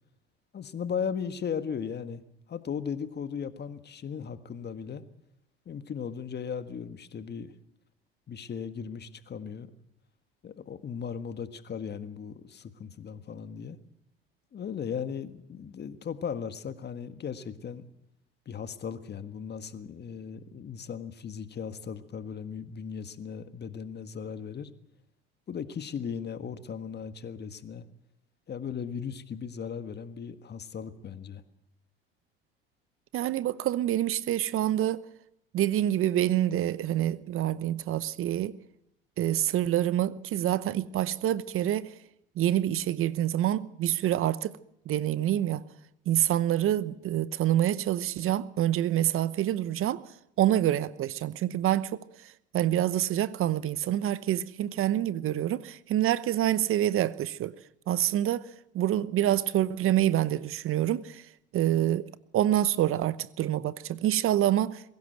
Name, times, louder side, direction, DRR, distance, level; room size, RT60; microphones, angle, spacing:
voice 1, 0.5-2.2 2.5-5.0 5.6-7.5 8.3-9.7 10.4-13.8 14.5-17.9 18.4-24.7 25.5-27.8 28.5-31.4, left 7 dB, 35° left, 1.6 m, -37 dB
voice 2, 33.1-35.0 35.5-38.5 39.2-41.9 42.4-44.5 44.9-45.6 46.1-50.0 50.4-52.0 52.5-57.5 57.9-58.4 58.7-61.2 61.5-62.0 62.3-64.8, right 12 dB, 50° right, 0.9 m, -26 dB
22.5 x 16.5 x 7.9 m
hypercardioid pair, 70°, 29 cm